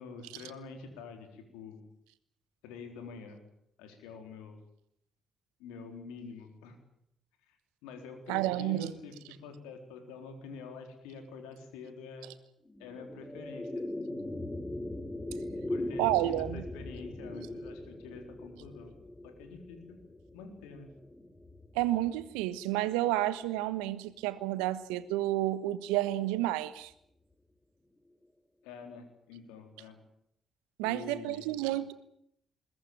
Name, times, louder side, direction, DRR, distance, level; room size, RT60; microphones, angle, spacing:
voice 1, 0.0-1.8 2.6-3.4 3.8-4.6 5.6-6.8 7.5-7.6 7.8-12.3 12.8-13.8 15.7-18.9 19.2-20.0 20.3-20.9 28.6-30.0 30.8-31.5, left 5 dB, 80° left, 6 dB, 4.0 m, -46 dB
voice 2, 8.3-8.9 16.0-16.6 21.7-26.9 30.8-31.9, right 15 dB, 80° right, 15 dB, 1.2 m, -30 dB
sound 1, 12.7-23.2, left 1 dB, 20° left, 3.6 m, -40 dB
21.5 x 19.0 x 9.2 m, 0.73 s
hypercardioid pair, 45°, 0 cm